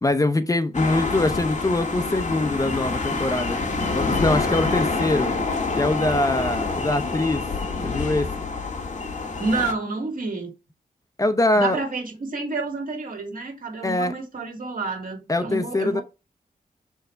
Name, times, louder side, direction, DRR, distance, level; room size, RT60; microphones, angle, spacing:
voice 1, 0.0-3.6 3.9-5.3 5.7-7.5 7.8-8.3 11.2-11.8 13.8-14.1 15.3-16.0, left 2 dB, 20° left, 0.6 m, -23 dB
sound 1, 0.7-9.7, left 3 dB, 50° left, 1.9 m, -26 dB
voice 2, 9.4-10.5 11.5-16.0, right 3 dB, 65° right, 2.4 m, -29 dB
6.5 x 4.6 x 4.5 m
wide cardioid pair, 135°, 15 cm